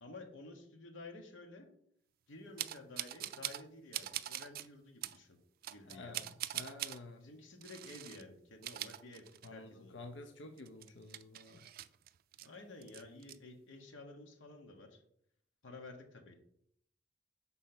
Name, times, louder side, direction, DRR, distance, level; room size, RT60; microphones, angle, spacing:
voice 1, 0.0-1.7 2.3-5.4 5.7-6.1 7.2-9.9 12.4-15.0 15.6-16.3, left 2 dB, 85° left, 3 dB, 1.1 m, -52 dB
sound 1, 2.6-3.7 3.9-4.7 5.0-5.2 5.6-7.0 7.6-8.2 8.5-9.7 10.0-10.1 10.6-12.5 12.8-13.4, right 13 dB, 55° right, 0.3 m, -43 dB
voice 2, 5.8-7.3 9.4-11.7, left 2 dB, 70° left, 6 dB, 0.6 m, -50 dB
5.6 x 4.0 x 5.9 m, 0.70 s
head